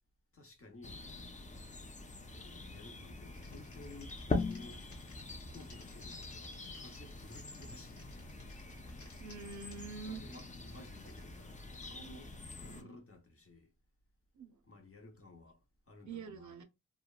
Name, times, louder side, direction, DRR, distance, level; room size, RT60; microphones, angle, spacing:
voice 1, 0.3-1.1 2.3-4.8 5.5-8.2 10.0-13.7 14.6-15.6 15.9-16.6, left 2 dB, 50° left, 0.8 m, -55 dB
sound 1, 0.8-12.8, left 3 dB, 25° left, 0.4 m, -43 dB
Typing, 3.3-11.4, left 2 dB, 85° left, 1.2 m, -59 dB
voice 2, 9.2-10.2 12.7-12.9 14.4-14.6 16.0-16.6, right 5 dB, 75° right, 0.5 m, -46 dB
2.8 x 2.2 x 2.3 m
wide cardioid pair, 80°, 30 cm